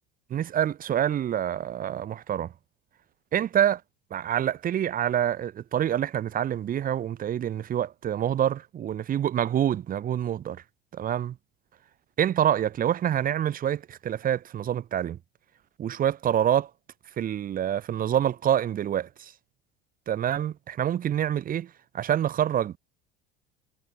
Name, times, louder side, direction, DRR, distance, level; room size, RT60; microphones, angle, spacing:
voice 1, 0.3-2.5 3.3-3.8 4.1-10.6 10.9-11.4 12.2-15.2 15.8-16.7 17.2-19.3 20.1-22.8, right 10 dB, 25° right, 0.6 m, -26 dB
figure-of-eight pair, 70°, 31 cm